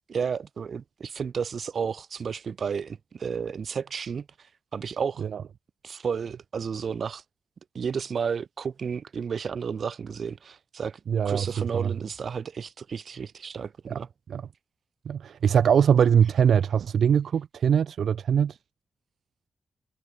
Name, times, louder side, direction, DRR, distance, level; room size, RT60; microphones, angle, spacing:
voice 1, 0.1-4.3 4.7-5.2 5.8-7.2 7.7-11.0 11.2-14.1, right 6 dB, 60° right, 1.5 m, -32 dB
voice 2, 11.1-11.5 11.7-11.9 13.9-14.0 14.3-14.4 15.1-18.6, right 8 dB, 85° right, 0.7 m, -22 dB
wide cardioid pair, 140°, 0 cm